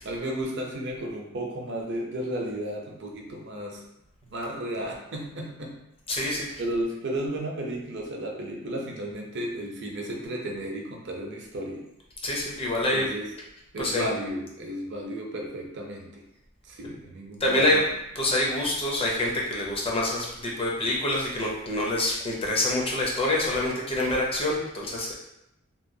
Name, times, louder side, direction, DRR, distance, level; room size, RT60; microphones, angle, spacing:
voice 1, 0.0-3.8 4.2-5.8 6.1-6.3 6.6-11.8 12.9-13.3 13.7-16.2 16.6-17.8, right 1 dB, 55° right, 0 dB, 0.6 m, -33 dB
voice 2, 6.1-6.5 12.2-13.1 13.8-14.1 17.4-17.8 18.2-25.1, left 1 dB, 25° left, -3 dB, 0.5 m, -26 dB
2.9 x 2.3 x 2.6 m, 0.87 s
head